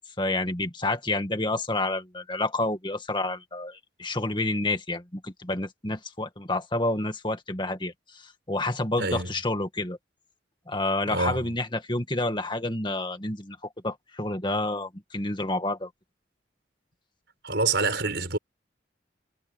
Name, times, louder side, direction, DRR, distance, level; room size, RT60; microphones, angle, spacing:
voice 1, 0.2-10.0 10.7-15.9, left 2 dB, 25° left, 2.0 m, -29 dB
voice 2, 9.0-9.3 11.1-11.5 17.4-18.4, right 3 dB, 60° right, 5.6 m, -26 dB
head